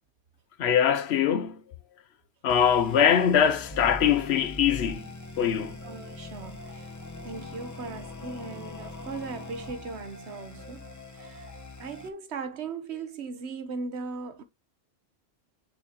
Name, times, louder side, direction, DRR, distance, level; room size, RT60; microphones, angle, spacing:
voice 1, 0.6-1.6 2.4-5.1 5.4-5.8, left 8 dB, 65° left, 0.8 m, -22 dB
sound 1, 2.5-12.1, left 2 dB, 15° left, 0.8 m, -42 dB
voice 2, 5.8-6.9 7.2-10.9 11.1-11.5 11.8-14.4, right 4 dB, 65° right, 1.2 m, -38 dB
6.5 x 6.1 x 2.8 m
omnidirectional pair, 1.2 m